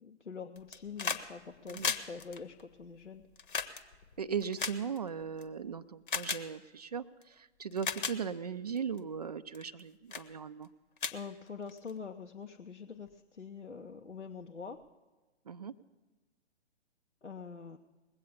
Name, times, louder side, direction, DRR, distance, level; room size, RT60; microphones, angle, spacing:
voice 1, 0.0-3.3 11.1-14.9 17.2-17.8, left 5 dB, 90° left, 4 dB, 0.8 m, -45 dB
sound 1, 0.6-1.3 1.5-5.4 6.1-6.4 7.2-7.3 7.7-8.2 8.8-9.0 9.5-9.8 10.1-10.3 10.6-10.7 11.0-11.9 13.1-13.2, left 6 dB, 50° left, 0.9 m, -36 dB
voice 2, 4.2-10.7 15.5-15.7, right 6 dB, 35° right, 13 dB, 0.4 m, -38 dB
20.5 x 8.3 x 7.0 m, 1.2 s
figure-of-eight pair, 125°, 34 cm